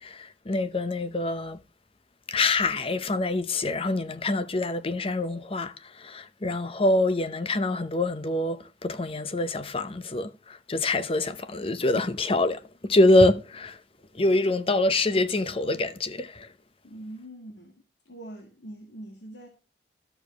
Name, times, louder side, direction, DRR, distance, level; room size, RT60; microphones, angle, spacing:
voice 1, 0.0-1.6 2.3-13.8 14.1-16.5, left 2 dB, 30° left, 0.8 m, -25 dB
voice 2, 16.8-17.8 18.1-19.5, right 1 dB, 80° left, 2.0 m, -43 dB
13.0 x 6.9 x 3.0 m
head